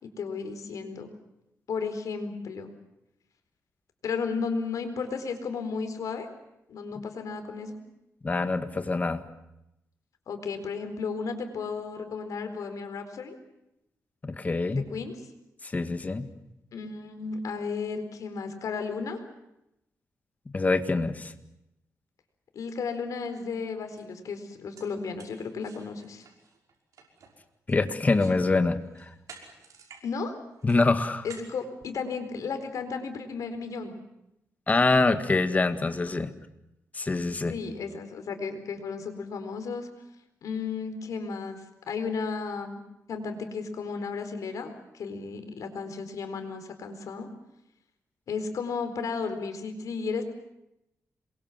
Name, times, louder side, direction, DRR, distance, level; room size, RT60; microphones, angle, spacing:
voice 1, 0.0-1.1 1.7-2.7 4.0-6.3 6.7-7.8 10.3-13.4 14.7-15.1 16.7-19.2 22.5-26.2 30.0-30.3 31.2-34.0 37.5-39.9 40.4-41.6 41.9-42.8 43.1-47.3 48.3-50.2, left 5 dB, 75° left, 7 dB, 4.3 m, -34 dB
voice 2, 8.2-9.2 14.2-14.9 15.6-16.3 20.5-21.3 27.7-28.8 30.6-31.3 34.7-36.3 36.9-37.5, left 3 dB, 25° left, 9 dB, 1.9 m, -25 dB
sound 1, 23.4-23.6 24.0-24.1 24.5-28.4 28.8-30.1 30.3-32.5, right 5 dB, 80° right, 5.7 m, -52 dB
27.5 x 22.5 x 7.5 m, 0.86 s
wide cardioid pair, 115°, 6 cm